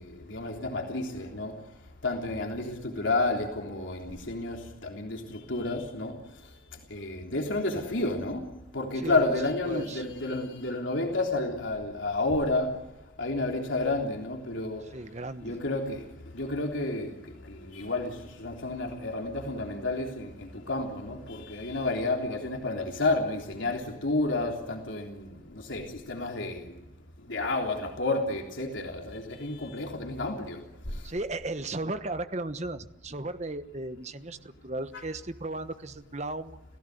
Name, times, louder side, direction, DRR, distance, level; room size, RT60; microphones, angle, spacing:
voice 1, 0.0-1.5 2.0-6.1 6.9-8.5 8.7-12.7 13.2-14.8 15.4-16.0 16.3-17.2 17.5-26.7 27.3-30.6 34.9-35.0, left 2 dB, 85° left, 2 dB, 3.4 m, -30 dB
voice 2, 9.0-9.3 9.7-10.0 14.9-15.6 31.0-36.6, right 2 dB, 35° right, 10 dB, 1.2 m, -35 dB
29.5 x 16.5 x 9.4 m, 1.0 s
head